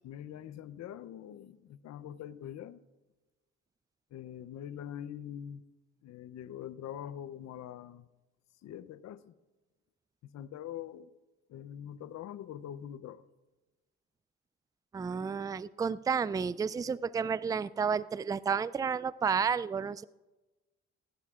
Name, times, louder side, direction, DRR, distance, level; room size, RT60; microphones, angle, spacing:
voice 1, 0.0-2.8 4.1-5.6 6.0-8.1 8.6-9.3 10.2-11.1 11.5-13.2, left 10 dB, 65° left, 0.7 m, -44 dB
voice 2, 14.9-20.0, right 6 dB, 15° right, 0.3 m, -31 dB
19.5 x 16.5 x 2.5 m
supercardioid pair, 65°, 29 cm